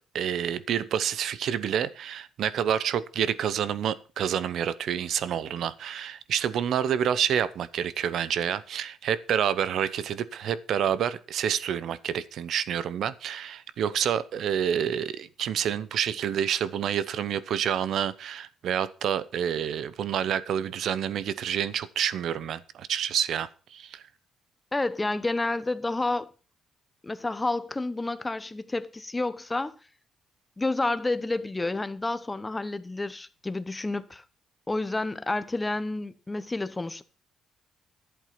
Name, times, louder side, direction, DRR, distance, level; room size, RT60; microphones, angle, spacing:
voice 1, 0.1-24.0, right 9 dB, 70° right, 0.8 m, -28 dB
voice 2, 24.7-26.3 27.0-29.8 30.6-34.2 34.7-37.0, left 2 dB, 15° left, 0.9 m, -30 dB
11.5 x 8.3 x 5.8 m
cardioid pair, 90°, 0 cm